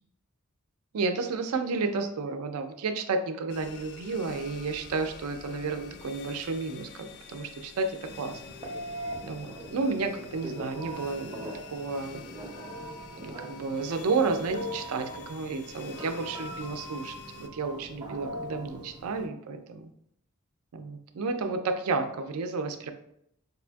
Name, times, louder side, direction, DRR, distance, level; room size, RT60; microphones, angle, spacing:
voice 1, 0.9-8.4 9.2-12.2 13.2-19.9 20.7-22.9, right 4 dB, 85° right, 7 dB, 0.4 m, -31 dB
sound 1, 3.5-17.5, left 6 dB, 50° left, 0.3 m, -48 dB
Telephone, 8.1-19.3, equal, 20° right, 0.5 m, -41 dB
4.8 x 2.5 x 2.3 m, 0.75 s
head